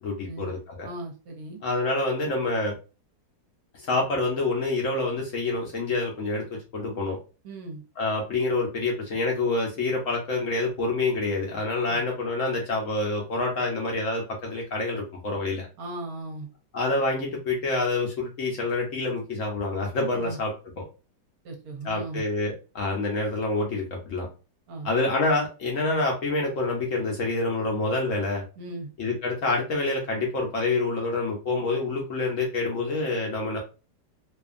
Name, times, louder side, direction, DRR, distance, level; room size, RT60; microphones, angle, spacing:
voice 1, 0.0-0.9 1.6-2.8 3.8-7.2 8.0-15.7 16.7-20.8 21.8-24.3 24.8-28.4 29.0-33.6, left 2 dB, 60° left, 0 dB, 0.9 m, -27 dB
voice 2, 0.8-1.6 7.4-7.8 11.9-12.0 15.8-16.5 20.2-20.4 21.4-22.2 24.7-24.9 28.6-28.9, right 2 dB, 65° right, 2 dB, 1.0 m, -37 dB
2.7 x 2.4 x 2.4 m, 0.32 s
omnidirectional pair, 1.8 m